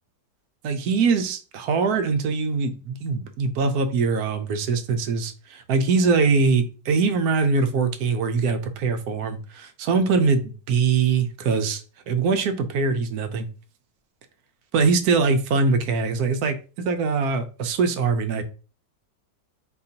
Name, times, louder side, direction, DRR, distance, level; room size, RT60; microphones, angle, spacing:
voice 1, 0.6-13.5 14.7-16.6 16.8-18.4, right 4 dB, 70° right, 8 dB, 1.0 m, -22 dB
4.3 x 3.8 x 2.8 m, 0.35 s
omnidirectional pair, 1.9 m